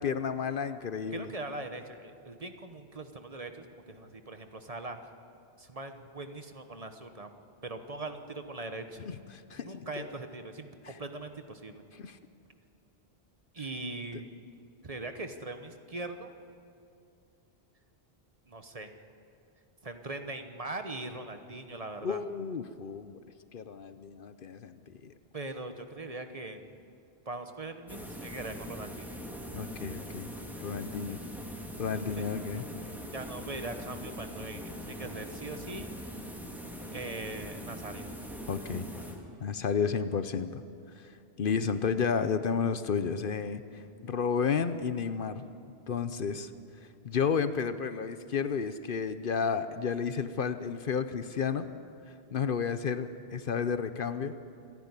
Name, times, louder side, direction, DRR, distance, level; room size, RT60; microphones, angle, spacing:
voice 1, 0.0-1.3 9.0-10.1 10.8-10.9 11.9-12.2 22.0-23.2 23.5-25.1 29.5-30.3 30.6-31.2 31.8-32.6 38.5-38.9 39.4-40.6 40.9-41.1 41.4-45.5 45.9-46.5 47.0-51.7 52.1-54.3, left 6 dB, 60° left, 11 dB, 0.9 m, -32 dB
voice 2, 1.1-5.0 5.6-7.3 7.6-9.0 9.6-11.8 13.5-14.3 14.8-16.3 18.5-18.9 19.8-22.2 25.3-26.6 27.3-29.2 31.9-32.3 33.1-35.9 36.9-38.1, right 2 dB, 35° right, 7 dB, 1.1 m, -41 dB
sound 1, 27.9-39.5, equal, ahead, 2.1 m, -42 dB
27.0 x 11.0 x 9.8 m, 2.6 s
omnidirectional pair, 1.1 m